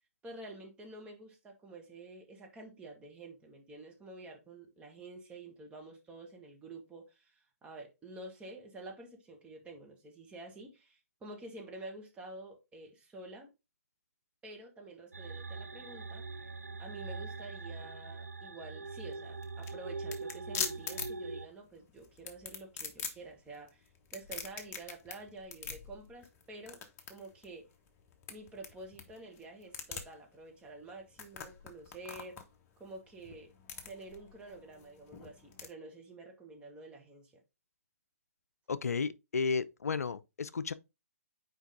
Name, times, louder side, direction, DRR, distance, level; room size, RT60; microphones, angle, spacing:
voice 1, 0.2-13.5 14.4-16.3 16.8-26.8 27.1-27.7 28.3-32.4 32.8-33.5 33.9-37.4, right 2 dB, 15° right, 1.7 m, -49 dB
sound 1, 15.1-21.5, right 3 dB, 80° right, 0.5 m, -42 dB
sound 2, 18.9-35.7, left 6 dB, 25° left, 1.1 m, -44 dB
voice 2, 38.7-40.7, left 5 dB, 75° left, 0.4 m, -33 dB
5.7 x 4.7 x 3.6 m
figure-of-eight pair, 125°, 8 cm